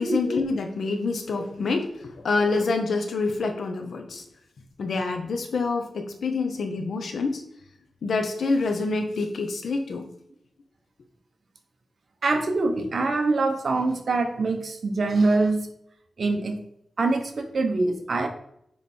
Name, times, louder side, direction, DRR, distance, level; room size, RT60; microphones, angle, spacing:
voice 1, 0.0-4.2 4.8-7.4 8.0-10.0, left 3 dB, 80° left, 5 dB, 1.1 m, -27 dB
voice 2, 12.2-15.7 16.2-16.6 17.0-18.3, right 3 dB, 60° right, 5 dB, 1.1 m, -24 dB
8.9 x 3.4 x 4.5 m, 0.74 s
wide cardioid pair, 105°, 0 cm